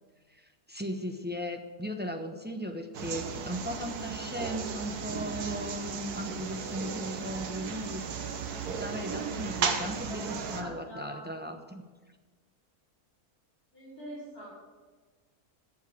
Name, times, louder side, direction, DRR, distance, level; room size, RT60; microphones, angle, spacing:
voice 1, 0.3-8.1 8.7-11.8, equal, 10° right, 4 dB, 0.6 m, -37 dB
sound 1, 2.9-10.6, right 6 dB, 85° right, 1.6 m, -35 dB
voice 2, 10.5-11.3 13.7-14.5, equal, 70° left, -8 dB, 5.4 m, -44 dB
11.5 x 7.2 x 7.8 m, 1.4 s
omnidirectional pair, 1.6 m